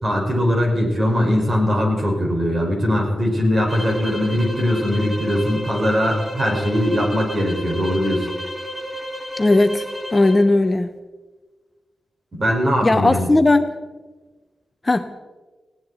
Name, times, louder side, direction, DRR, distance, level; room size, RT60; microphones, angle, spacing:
voice 1, 0.0-8.2 12.3-13.3, equal, 35° right, 0 dB, 5.1 m, -20 dB
sound 1, 3.7-10.5, equal, ahead, 3.3 m, -32 dB
voice 2, 9.4-9.9 10.1-10.9 12.8-13.7 14.8-15.1, left 2 dB, 25° left, 8 dB, 0.8 m, -17 dB
20.0 x 17.0 x 4.2 m, 1.3 s
wide cardioid pair, 105°, 0 cm